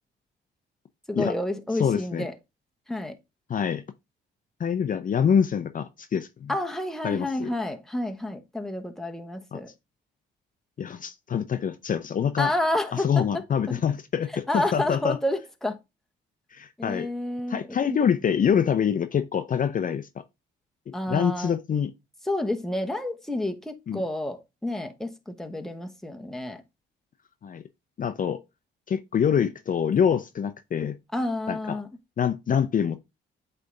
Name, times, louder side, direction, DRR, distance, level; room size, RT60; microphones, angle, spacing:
voice 1, 1.1-2.3 2.9-3.2 6.5-9.7 12.4-13.2 14.5-15.8 16.8-17.6 20.9-21.5 22.3-26.6 31.1-31.9, left 1 dB, ahead, 1.1 m, -29 dB
voice 2, 1.7-2.3 3.5-3.8 4.6-6.5 7.0-7.5 9.5-9.6 10.8-12.5 12.9-15.2 16.5-17.1 17.5-20.2 20.9-21.9 23.9-24.0 27.4-27.6 28.0-28.4 28.9-31.0 31.5-31.8 32.2-33.0, left 7 dB, 45° left, 0.6 m, -25 dB
8.2 x 3.4 x 3.9 m
cardioid pair, 90°, 20 cm